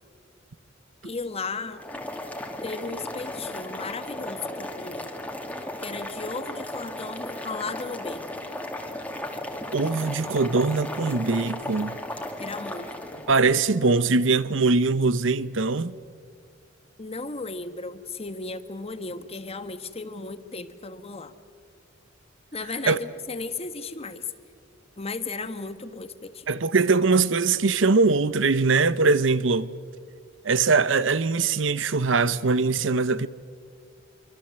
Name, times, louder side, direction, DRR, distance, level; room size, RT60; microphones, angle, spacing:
voice 1, 1.0-1.8 2.6-5.1 5.8-8.2 12.4-13.3 17.0-21.3 22.5-24.2 25.0-26.5, left 3 dB, 30° left, 1.3 m, -35 dB
Boiling, 1.7-13.3, left 1 dB, 10° left, 2.3 m, -35 dB
voice 2, 9.7-12.0 13.3-16.0 22.9-23.0 26.5-29.7 30.4-33.3, right 4 dB, 70° right, 0.8 m, -22 dB
26.0 x 24.5 x 7.8 m
head